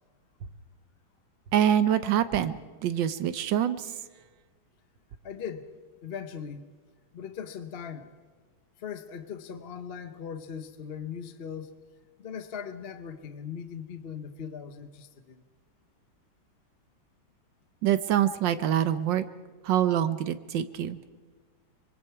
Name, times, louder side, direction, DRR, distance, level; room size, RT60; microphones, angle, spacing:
voice 1, 1.5-2.6 2.8-3.9 17.8-19.3 19.6-21.0, right 10 dB, 70° right, 12 dB, 1.5 m, -25 dB
voice 2, 5.2-5.7 6.0-6.6 7.1-8.1 8.8-11.7 12.2-15.4, left 7 dB, 45° left, 9 dB, 0.8 m, -39 dB
25.0 x 22.0 x 4.7 m, 1.5 s
omnidirectional pair, 2.2 m